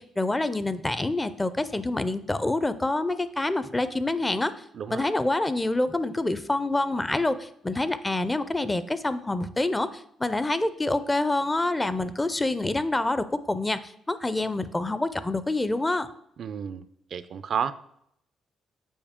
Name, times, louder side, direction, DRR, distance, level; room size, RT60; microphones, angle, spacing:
voice 1, 0.0-4.5 4.9-16.1, left 2 dB, 15° left, 13 dB, 0.4 m, -27 dB
voice 2, 4.7-5.1 16.4-16.8 17.1-17.7, right 7 dB, 60° right, 13 dB, 0.4 m, -31 dB
7.1 x 4.9 x 3.6 m, 0.73 s
cardioid pair, 90°, 0 cm